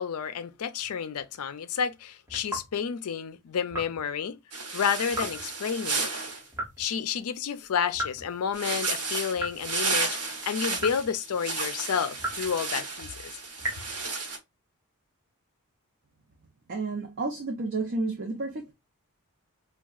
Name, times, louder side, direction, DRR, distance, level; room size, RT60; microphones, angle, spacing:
voice 1, 0.0-4.4 4.7-6.1 6.8-13.1, left 7 dB, 70° left, 0.4 m, -30 dB
sound 1, 2.3-2.7 3.7-4.0 5.1-5.5 6.5-6.9 7.9-8.4 9.4-9.7 10.8-11.2 12.2-12.6 13.6-14.0, equal, 10° right, 1.5 m, -35 dB
sound 2, 4.5-6.4 8.5-14.4, right 4 dB, 80° right, 1.0 m, -32 dB
voice 2, 16.7-18.7, right 3 dB, 50° right, 0.7 m, -31 dB
4.5 x 2.3 x 2.3 m
head